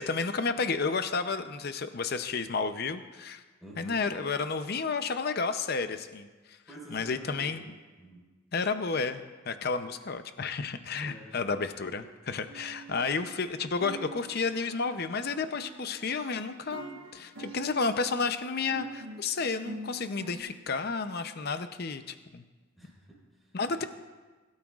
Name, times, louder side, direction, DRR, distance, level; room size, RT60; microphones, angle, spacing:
voice 1, 0.0-3.4 3.8-6.6 6.9-7.7 8.5-22.4 23.5-23.8, left 4 dB, 45° left, 10 dB, 0.6 m, -31 dB
voice 2, 3.6-4.2 6.7-8.3 11.0-11.4 22.8-23.9, equal, ahead, -6 dB, 4.4 m, -49 dB
sound 1, 12.5-13.5 13.8-20.4, right 3 dB, 85° right, 1.4 m, -46 dB
22.5 x 12.5 x 2.4 m, 1.3 s
head